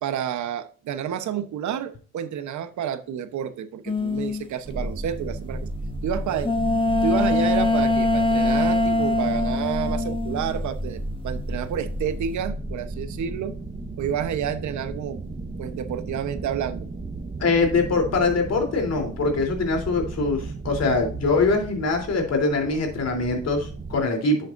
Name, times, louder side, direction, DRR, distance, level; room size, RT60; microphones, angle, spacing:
voice 1, 0.0-5.7 6.0-6.5 7.0-13.6 14.0-15.2 15.6-16.9, right 9 dB, 70° right, 1.0 m, -29 dB
sound 1, 3.9-4.5 6.4-11.1 11.3-12.2, left 2 dB, 15° left, 1.2 m, -23 dB
sound 2, 4.6-24.0, right 2 dB, 25° right, 1.1 m, -34 dB
voice 2, 17.4-24.4, left 3 dB, 55° left, 3.4 m, -23 dB
10.5 x 7.8 x 2.6 m
cardioid pair, 90°, 30 cm